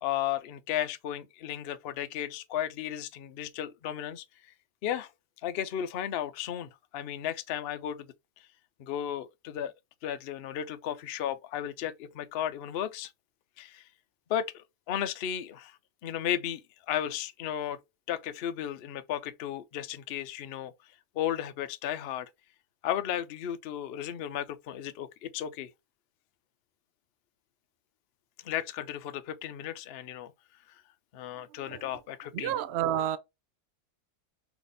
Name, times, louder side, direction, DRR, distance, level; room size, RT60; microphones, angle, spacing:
voice 1, 0.0-4.2 4.8-5.1 5.4-8.1 8.8-9.7 10.0-13.1 13.6-13.9 14.3-16.6 16.9-17.8 18.1-20.7 21.1-22.3 22.8-25.7 28.4-30.3 31.1-32.5, left 10 dB, 65° left, 0.6 m, -34 dB
voice 2, 32.3-33.2, right 11 dB, 75° right, 0.6 m, -29 dB
4.0 x 3.4 x 3.3 m
omnidirectional pair, 1.7 m